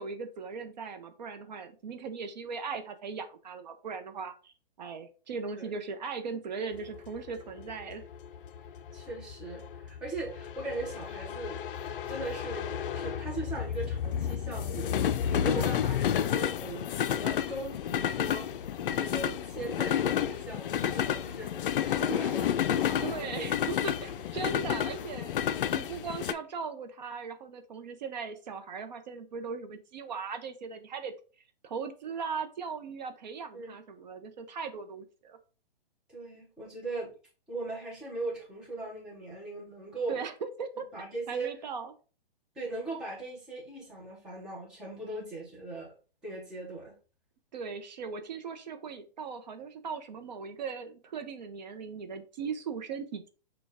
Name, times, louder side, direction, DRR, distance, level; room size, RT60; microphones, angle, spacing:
voice 1, 0.0-4.5 4.8-8.0 15.4-15.8 22.9-25.4 25.7-31.1 31.6-35.4 40.1-40.3 40.6-40.8 41.3-41.9 47.5-53.3, right 5 dB, 50° right, 7 dB, 0.6 m, -38 dB
sound 1, 6.8-26.3, left 9 dB, 65° left, 0.4 m, -31 dB
voice 2, 8.9-11.6 12.1-14.9 15.3-23.5 33.5-33.8 36.1-37.1 37.5-40.2 40.9-41.5 42.5-45.9 46.2-47.0, right 2 dB, 5° right, -5 dB, 0.6 m, -39 dB
6.3 x 2.2 x 3.4 m, 0.36 s
hypercardioid pair, 160°, 29 cm